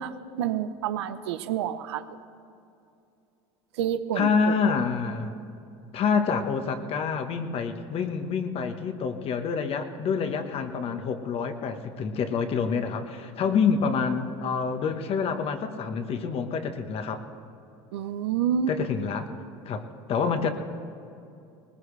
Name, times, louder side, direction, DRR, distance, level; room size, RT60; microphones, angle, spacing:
voice 1, 0.0-2.0 3.8-4.3 17.9-18.7, right 9 dB, 90° right, 11 dB, 0.7 m, -28 dB
voice 2, 4.1-5.3 5.9-17.3 18.7-19.3 19.6-20.5, left 5 dB, 45° left, 7 dB, 1.3 m, -27 dB
20.0 x 19.5 x 3.4 m, 2.6 s
supercardioid pair, 105°, 14 cm